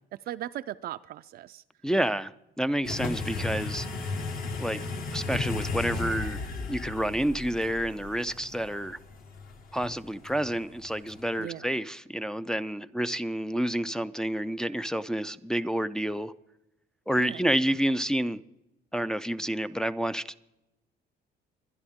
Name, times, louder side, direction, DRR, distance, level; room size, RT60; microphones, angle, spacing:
voice 1, 0.1-1.6 11.4-11.6 17.2-17.4, right 13 dB, 60° right, 0.4 m, -38 dB
voice 2, 1.8-4.2 4.6-6.4 6.7-9.0 9.7-16.3 17.1-18.4 18.9-20.2, right 1 dB, 5° left, 0.4 m, -29 dB
sound 1, 2.8-11.4, left 3 dB, 50° left, 1.6 m, -35 dB
23.0 x 10.5 x 3.6 m
cardioid pair, 130°, 18 cm